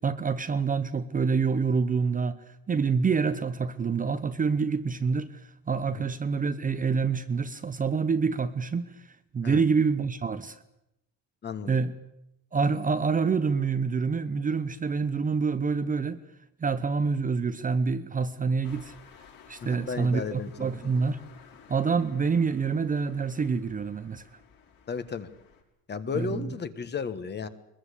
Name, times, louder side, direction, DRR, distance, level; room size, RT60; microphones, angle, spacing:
voice 1, 0.0-9.1 9.3-10.6 11.7-11.9 12.5-16.2 16.6-18.9 19.5-21.2 21.7-24.2 26.1-26.4, right 5 dB, 20° right, 0.9 m, -27 dB
voice 2, 11.4-11.8 19.6-20.7 24.9-25.3 25.9-27.5, left 6 dB, 30° left, 1.4 m, -34 dB
sound 1, 18.6-25.6, left 7 dB, 60° left, 6.1 m, -54 dB
22.5 x 22.0 x 8.4 m
cardioid pair, 145°, 37 cm